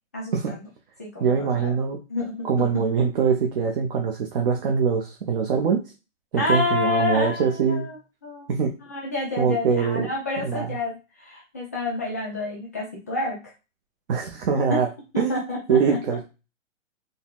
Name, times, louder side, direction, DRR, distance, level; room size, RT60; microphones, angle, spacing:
voice 1, 0.1-0.7 1.0-1.8 2.1-2.8 6.4-8.5 8.9-13.4 14.7-14.8 15.1-16.0, left 2 dB, 15° left, -4 dB, 0.3 m, -29 dB
voice 2, 1.2-2.0 2.4-5.8 6.3-7.9 8.5-8.7 9.4-10.1 10.4-10.7 14.1-14.9 15.2-15.3 15.7-16.2, right 6 dB, 45° right, 2 dB, 0.6 m, -23 dB
3.9 x 2.0 x 2.3 m, 0.29 s
hypercardioid pair, 140°, 39 cm